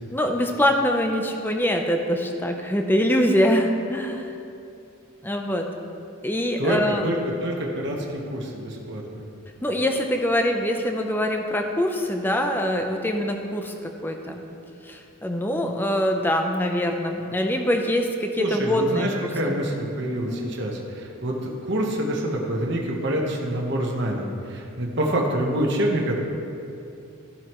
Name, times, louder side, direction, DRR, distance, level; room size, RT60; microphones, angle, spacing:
voice 1, 0.1-4.3 5.2-5.7 6.2-7.0 9.6-14.4 14.8-19.1 19.4-19.6 20.3-20.5, equal, 10° left, 3 dB, 0.6 m, -24 dB
voice 2, 6.6-9.3 18.4-26.2, right 1 dB, 55° right, -1 dB, 1.1 m, -26 dB
14.0 x 7.6 x 3.1 m, 2.6 s
head